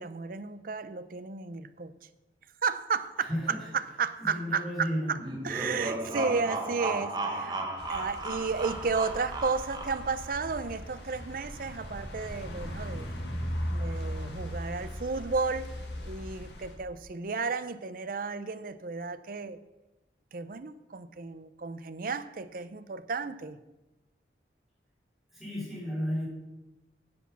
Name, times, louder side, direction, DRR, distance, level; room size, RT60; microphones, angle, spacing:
voice 1, 0.0-1.9 2.6-5.2 5.4-13.1 13.7-15.7 16.1-19.6 20.3-23.6, right 4 dB, 50° right, 0.6 m, -33 dB
voice 2, 3.2-3.6 4.2-5.2 25.3-26.3, equal, ahead, 4.0 m, -33 dB
sound 1, 5.2-10.3, right 2 dB, 25° right, 1.2 m, -35 dB
sound 2, 7.8-16.7, equal, 70° left, 1.9 m, -38 dB
9.8 x 8.3 x 5.9 m
head